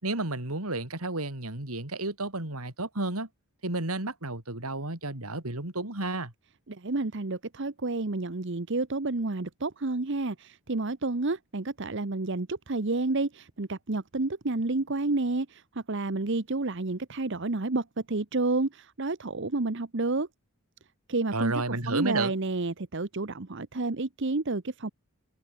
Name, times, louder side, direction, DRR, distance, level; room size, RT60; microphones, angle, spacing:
voice 1, 0.0-3.3 3.6-6.3 21.3-22.3, right 2 dB, 85° right, 4.2 m, -32 dB
voice 2, 6.7-20.3 21.1-24.9, right 3 dB, 55° right, 1.0 m, -30 dB
head